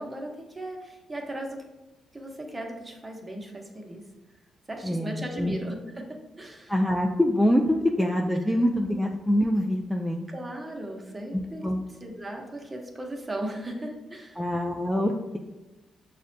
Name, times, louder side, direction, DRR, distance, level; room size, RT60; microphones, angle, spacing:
voice 1, 0.0-1.6 2.1-4.0 4.7-6.7 10.3-11.6 12.0-14.4, right 1 dB, 20° right, 1 dB, 0.8 m, -37 dB
voice 2, 4.8-5.5 6.7-10.3 11.6-11.8 14.4-15.4, equal, 5° left, 1 dB, 0.3 m, -25 dB
6.1 x 2.1 x 2.6 m, 1.1 s
cardioid pair, 70°, 0 cm